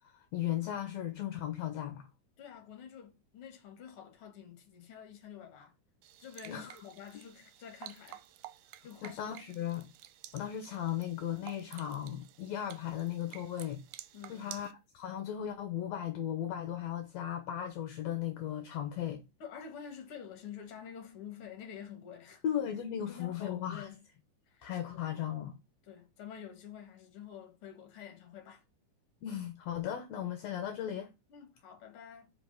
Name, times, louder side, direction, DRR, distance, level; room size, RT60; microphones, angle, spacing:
voice 1, 0.1-2.1 6.5-6.8 9.0-9.9 10.3-13.8 14.3-19.2 22.4-23.9 24.6-25.6 29.2-31.1, left 10 dB, 70° left, 1.9 m, -36 dB
voice 2, 2.4-5.7 6.2-8.2 8.8-9.6 14.1-14.6 19.4-22.4 23.0-24.1 24.5-24.7 24.9-25.4 25.9-28.6 31.3-32.3, left 8 dB, 50° left, 2.2 m, -48 dB
sound 1, 6.0-14.7, right 14 dB, 80° right, 2.1 m, -52 dB
5.2 x 4.8 x 5.8 m
omnidirectional pair, 3.7 m